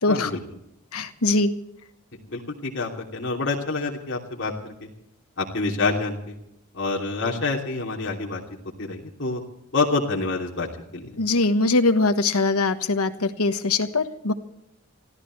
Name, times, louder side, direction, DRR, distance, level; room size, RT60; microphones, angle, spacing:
voice 1, 0.1-0.4 2.3-4.9 5.4-6.4 6.7-8.4 8.8-9.4 9.7-10.7 10.9-11.2, left 3 dB, 55° left, -1 dB, 3.0 m, -27 dB
voice 2, 0.9-1.5 11.2-14.3, left 3 dB, 80° left, 9 dB, 1.3 m, -22 dB
27.0 x 15.0 x 3.2 m, 0.81 s
head